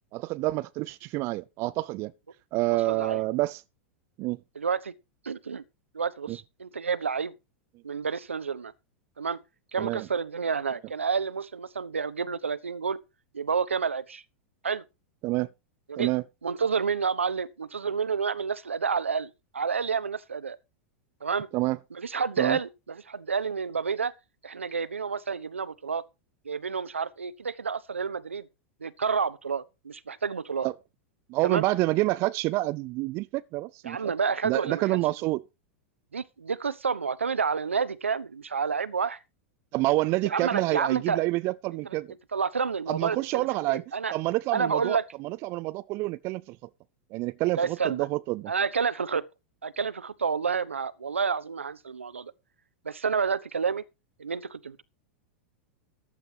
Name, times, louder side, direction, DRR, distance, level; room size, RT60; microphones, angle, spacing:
voice 1, 0.1-2.1 2.5-3.6 4.2-4.4 6.3-6.4 9.8-10.1 15.2-15.5 16.0-16.2 21.5-21.8 22.4-22.6 30.6-30.7 31.3-34.1 34.4-35.4 39.7-42.1 42.9-43.8 44.1-46.7 47.1-48.5, right 20 dB, 40° right, 0.5 m, -28 dB
voice 2, 2.7-3.2 4.5-4.9 5.2-5.6 5.9-7.3 7.8-8.7 9.2-9.4 9.7-13.0 13.3-14.2 14.6-14.8 15.9-16.1 16.4-20.6 21.2-21.5 21.9-24.1 24.4-26.0 26.4-28.5 28.8-30.7 31.4-31.6 33.8-34.8 36.1-39.2 40.2-41.2 42.3-44.1 44.5-45.0 47.5-48.0 48.5-49.2 49.6-52.3 52.8-53.8 54.2-54.8, right 5 dB, 75° right, 1.0 m, -29 dB
14.5 x 11.5 x 2.8 m
figure-of-eight pair, 95°, 7 cm